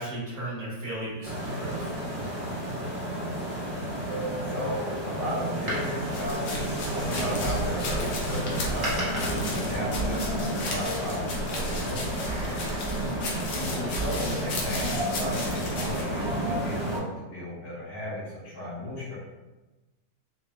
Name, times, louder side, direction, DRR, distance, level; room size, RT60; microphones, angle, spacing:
voice 1, 0.0-1.8 13.0-13.2, right 1 dB, 60° right, -8 dB, 1.6 m, -35 dB
sound 1, 1.2-17.0, right 1 dB, 75° right, 1.6 m, -31 dB
voice 2, 2.9-3.2 4.4-12.0 13.3-19.1, left 1 dB, 65° left, -8 dB, 1.6 m, -35 dB
Door, 5.5-7.3 8.2-11.1 12.0-13.2 13.5-13.6, right 1 dB, 40° right, 0.7 m, -38 dB
sound 2, 6.1-16.0, equal, 80° left, 1.3 m, -34 dB
4.0 x 2.6 x 2.2 m, 1.1 s
omnidirectional pair, 1.8 m